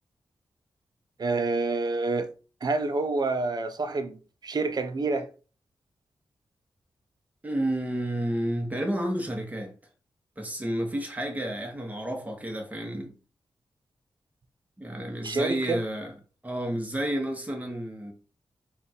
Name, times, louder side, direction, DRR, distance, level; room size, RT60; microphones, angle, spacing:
voice 1, 1.2-2.3 2.6-4.2 4.4-5.3 15.2-15.8, right 3 dB, 50° right, 0.5 m, -27 dB
voice 2, 7.4-9.7 10.4-13.1 14.8-16.1 16.4-18.1, right 1 dB, 15° right, 1.1 m, -31 dB
3.4 x 2.4 x 4.2 m
cardioid pair, 60°, 9 cm